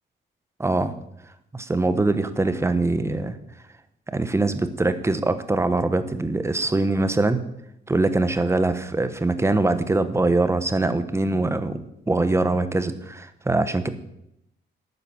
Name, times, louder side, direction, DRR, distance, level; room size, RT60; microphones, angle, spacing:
voice 1, 0.6-0.9 1.5-3.4 4.1-7.4 7.9-13.9, right 2 dB, 15° right, 11 dB, 1.1 m, -23 dB
12.0 x 9.4 x 7.1 m, 0.80 s
cardioid pair, 125°, 19 cm